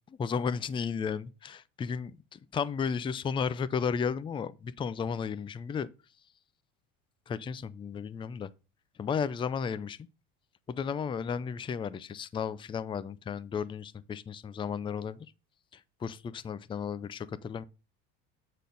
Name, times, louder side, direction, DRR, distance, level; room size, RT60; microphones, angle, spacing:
voice 1, 0.2-5.9 7.3-8.5 9.0-10.1 10.7-15.3 16.0-17.6, left 6 dB, 15° left, 0.4 m, -33 dB
8.4 x 4.1 x 5.2 m
supercardioid pair, 115°, 31 cm